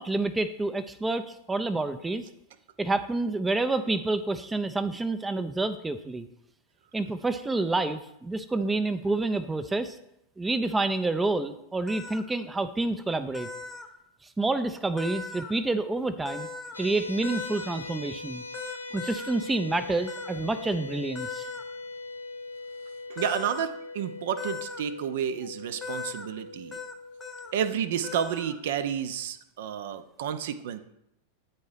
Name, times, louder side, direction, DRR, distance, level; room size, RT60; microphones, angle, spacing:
voice 1, 0.0-2.3 2.8-6.3 6.9-10.0 10.4-13.5 14.4-16.5 16.8-18.4 18.9-21.5, right 2 dB, 10° right, 9 dB, 0.4 m, -28 dB
sound 1, 11.9-12.2 13.3-13.9 15.0-15.5 16.2-16.8 17.2-17.7 18.5-19.3 20.1-20.3 21.1-21.6 23.2-23.7 24.4-24.8 25.8-26.3 26.7-26.9 27.2-27.5 28.0-28.5, left 5 dB, 20° left, 0.8 m, -38 dB
sound 2, 16.7-27.9, left 3 dB, 80° left, 0.9 m, -41 dB
voice 2, 23.1-26.8 27.5-30.8, right 8 dB, 55° right, 12 dB, 0.6 m, -31 dB
9.2 x 4.4 x 4.9 m, 0.80 s
figure-of-eight pair, 90°, 0 cm